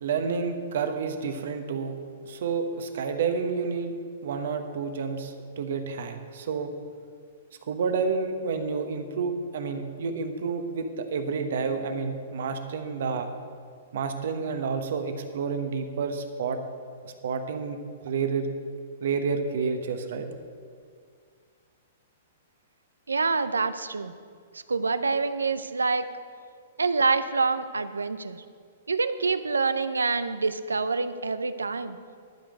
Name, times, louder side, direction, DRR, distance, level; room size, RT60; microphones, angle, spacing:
voice 1, 0.0-1.9 2.2-3.9 4.2-6.7 7.7-13.3 13.9-16.6 17.0-18.5 19.0-20.3, right 5 dB, 65° right, 7 dB, 1.1 m, -29 dB
voice 2, 23.1-24.1 24.5-26.1 26.8-28.4 28.9-32.0, right 4 dB, 85° right, 12 dB, 0.5 m, -26 dB
12.0 x 5.1 x 7.8 m, 2.1 s
hypercardioid pair, 115°, 0 cm